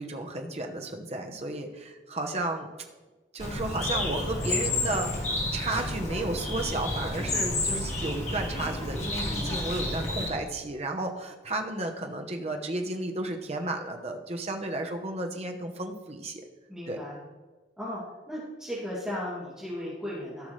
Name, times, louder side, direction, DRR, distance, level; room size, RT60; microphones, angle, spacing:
voice 1, 0.0-2.7 3.3-16.4 16.9-17.0, right 2 dB, 35° right, 3 dB, 1.0 m, -33 dB
Bird, 3.4-10.3, left 1 dB, 40° left, 2.3 m, -30 dB
voice 2, 16.7-17.2 17.8-18.0 18.3-20.5, left 1 dB, 5° right, -10 dB, 2.6 m, -36 dB
15.5 x 5.9 x 3.3 m, 1.2 s
head